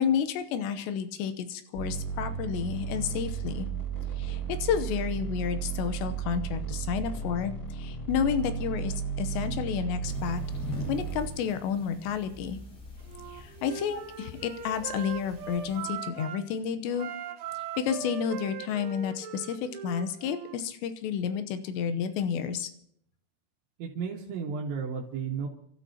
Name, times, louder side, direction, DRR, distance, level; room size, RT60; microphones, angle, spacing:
voice 1, 0.0-3.7 4.2-10.4 10.9-12.6 13.3-17.1 17.8-22.7, left 8 dB, 80° left, 10 dB, 3.1 m, -31 dB
sound 1, 1.7-11.3, right 7 dB, 30° left, 4.5 m, -34 dB
sound 2, 10.0-15.9, left 2 dB, 50° left, 6.3 m, -44 dB
Wind instrument woodwind instrument, 13.1-16.5 16.9-20.6, right 9 dB, 65° right, 3.1 m, -40 dB
voice 2, 23.8-25.5, right 6 dB, 80° right, -4 dB, 3.9 m, -33 dB
29.5 x 13.5 x 2.9 m, 0.69 s
omnidirectional pair, 5.1 m